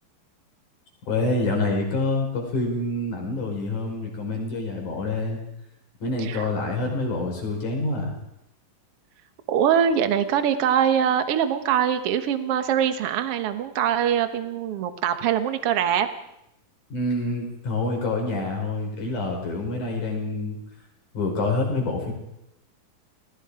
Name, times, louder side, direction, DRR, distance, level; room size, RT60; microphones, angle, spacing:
voice 1, 1.1-5.4 6.0-8.1 16.9-20.6 21.1-22.1, left 2 dB, 60° left, 1 dB, 6.7 m, -27 dB
voice 2, 9.5-16.1, right 9 dB, 55° right, 9 dB, 1.8 m, -23 dB
30.0 x 20.0 x 5.0 m, 0.83 s
omnidirectional pair, 4.0 m